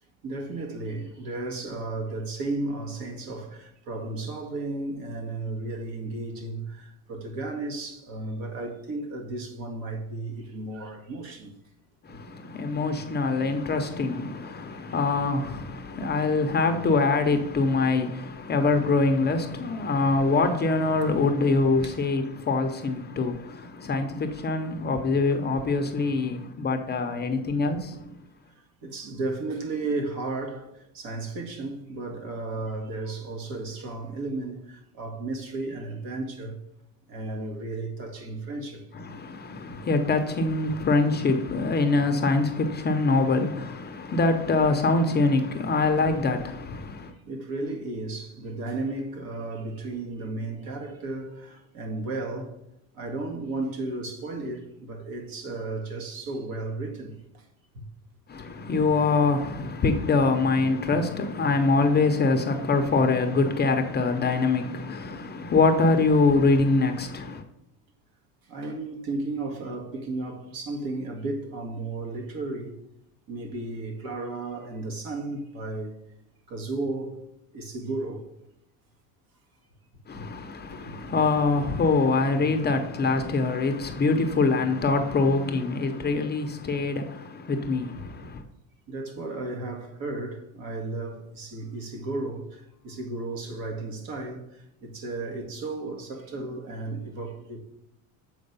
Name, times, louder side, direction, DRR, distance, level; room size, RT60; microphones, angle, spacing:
voice 1, 0.2-11.5 12.1-12.2 16.0-16.2 17.3-17.4 21.8-22.0 23.8-23.9 27.0-27.1 28.8-36.6 37.1-38.9 44.1-44.2 47.3-52.6 52.9-57.4 57.7-57.8 58.4-58.5 64.0-64.3 68.5-72.8 73.3-75.9 76.5-77.2 77.5-78.3 80.2-80.3 80.7-80.9 88.9-97.6, right 2 dB, 60° right, 1.8 m, -34 dB
voice 2, 12.0-28.1 39.0-47.1 58.3-67.4 80.1-88.4, left 3 dB, 25° left, 0.6 m, -24 dB
7.7 x 4.7 x 5.4 m
cardioid pair, 135°, 40 cm